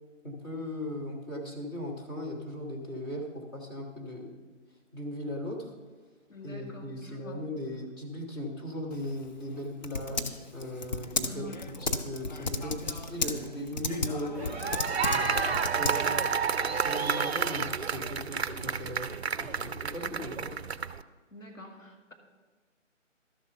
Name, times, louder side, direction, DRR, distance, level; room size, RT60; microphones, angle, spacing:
voice 1, 0.2-4.3 4.9-5.7 6.4-14.5 15.0-16.3 16.6-20.6, left 1 dB, 20° left, -3 dB, 1.5 m, -38 dB
voice 2, 6.3-7.4 11.2-11.6 20.0-20.2 21.3-22.1, left 2 dB, 85° left, 2 dB, 2.4 m, -47 dB
Typing, 8.9-16.4, left 3 dB, 35° left, 0.7 m, -35 dB
sound 1, 14.4-21.0, right 6 dB, 55° right, 0.5 m, -30 dB
12.5 x 7.3 x 5.7 m, 1.4 s
figure-of-eight pair, 150°, 38 cm